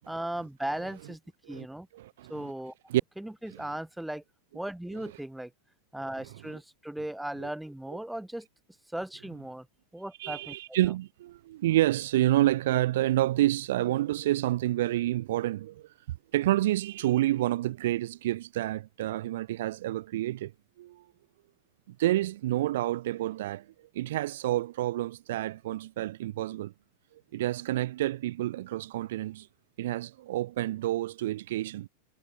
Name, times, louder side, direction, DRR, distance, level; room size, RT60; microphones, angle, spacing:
voice 1, 0.1-1.2 1.5-1.9 2.3-2.7 3.2-4.2 4.5-5.5 5.9-8.5 8.9-9.7 9.9-10.6, right 1 dB, 5° right, 0.8 m, -37 dB
voice 2, 1.9-2.3 2.9-3.0 7.4-7.5 10.2-15.9 16.3-20.5 20.8-21.0 21.9-23.7 23.9-26.7 27.3-29.5 29.8-31.9, right 15 dB, 55° right, 0.4 m, -28 dB
figure-of-eight pair, 90°, 0 cm